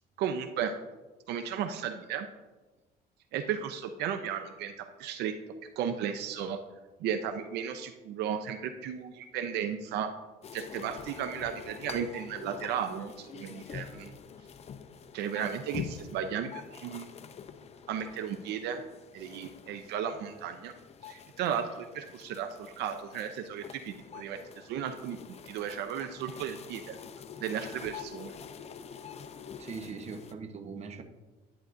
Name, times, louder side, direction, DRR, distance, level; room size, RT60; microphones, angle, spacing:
voice 1, 0.2-0.7 1.3-2.3 3.3-5.3 5.8-6.6 7.0-10.1 10.5-14.1 15.1-17.1 17.9-18.8 19.1-20.7 21.1-27.0 27.4-28.4, right 8 dB, 80° right, 8 dB, 0.6 m, -35 dB
sound 1, 10.4-30.3, left 7 dB, 40° left, 0.6 m, -46 dB
voice 2, 29.6-31.0, right 5 dB, 40° right, 6 dB, 0.9 m, -41 dB
11.0 x 9.3 x 2.6 m, 1.2 s
cardioid pair, 110°, 17 cm